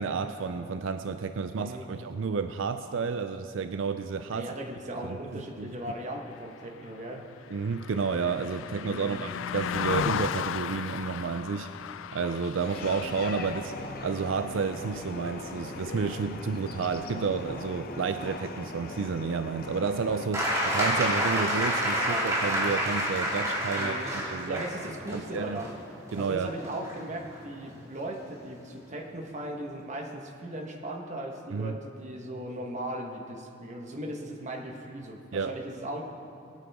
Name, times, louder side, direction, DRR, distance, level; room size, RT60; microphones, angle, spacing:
voice 1, 0.0-4.5 5.0-5.8 7.5-11.7 12.1-13.7 14.0-24.6 25.1-25.6 26.1-26.5 31.5-31.8 35.3-35.5, right 5 dB, 85° right, 9 dB, 0.4 m, -31 dB
voice 2, 1.5-1.9 4.3-7.3 8.9-9.3 23.7-24.1 24.5-25.7 26.2-36.0, right 1 dB, 40° right, 1 dB, 1.3 m, -38 dB
Car passing by, 6.3-15.9 16.3-16.5, left 8 dB, 85° left, 0.3 m, -36 dB
sound 1, 12.6-20.3, left 2 dB, 50° left, 0.8 m, -40 dB
sound 2, 20.3-27.9 29.1-29.2, equal, 15° right, 2.2 m, -29 dB
20.5 x 9.1 x 3.6 m, 2.8 s
head